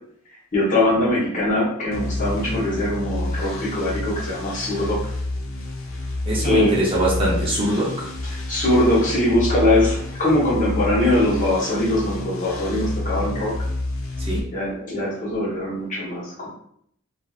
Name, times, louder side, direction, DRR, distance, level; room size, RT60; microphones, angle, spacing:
voice 1, 0.5-5.0 6.4-6.7 8.5-13.5 14.5-16.5, left 1 dB, 40° left, -7 dB, 1.2 m, -21 dB
sound 1, 1.9-14.4, left 2 dB, 70° left, 0.5 m, -29 dB
voice 2, 6.3-8.1 14.2-14.4, right 1 dB, 25° right, -5 dB, 0.6 m, -23 dB
2.8 x 2.5 x 2.4 m, 0.68 s
head